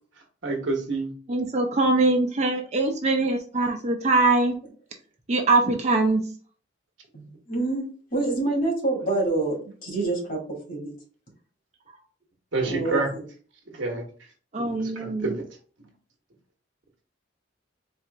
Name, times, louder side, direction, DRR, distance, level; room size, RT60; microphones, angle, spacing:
voice 1, 0.4-1.1 12.5-13.1 13.7-14.1 14.6-15.4, right 3 dB, 75° right, 1 dB, 1.2 m, -28 dB
voice 2, 1.3-4.5 5.3-6.2 14.5-15.3, right 2 dB, 35° right, 4 dB, 0.5 m, -22 dB
voice 3, 7.1-7.9 8.1-10.9 12.6-13.2, right 2 dB, 50° left, -3 dB, 2.0 m, -27 dB
4.4 x 2.5 x 3.4 m, 0.42 s
head